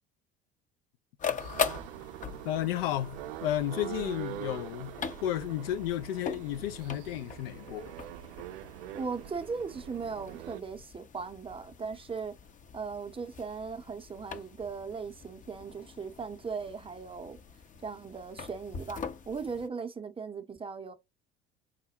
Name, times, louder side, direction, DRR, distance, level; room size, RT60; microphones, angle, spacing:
sound 1, 1.2-19.7, left 7 dB, 25° left, 0.6 m, -42 dB
sound 2, 1.4-10.6, right 14 dB, 65° right, 0.5 m, -44 dB
voice 1, 2.4-4.9 5.2-7.9, left 12 dB, 70° left, 0.5 m, -32 dB
voice 2, 8.9-12.3 12.7-17.4 17.8-20.9, right 5 dB, 15° right, 0.7 m, -38 dB
5.0 x 2.1 x 2.9 m
figure-of-eight pair, 65°, 32 cm